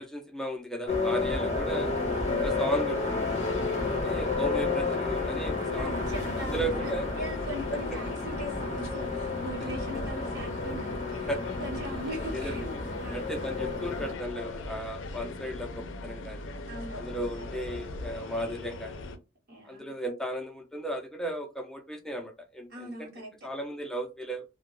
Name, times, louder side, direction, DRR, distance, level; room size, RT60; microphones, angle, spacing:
voice 1, 0.0-1.9 2.4-3.3 3.9-7.1 11.3-11.4 12.3-12.5 13.1-16.5 16.9-19.1 19.6-23.1 23.4-24.4, right 1 dB, 5° left, 0.4 m, -35 dB
sound 1, 0.9-14.1, left 3 dB, 35° left, 0.7 m, -31 dB
sound 2, 1.8-19.2, left 2 dB, 80° left, 0.4 m, -40 dB
voice 2, 3.5-3.9 5.7-11.3 11.6-12.7 13.0-13.4 16.7-17.5 19.5-19.9 22.7-23.3, right 1 dB, 55° right, 0.8 m, -40 dB
2.2 x 2.0 x 3.0 m
head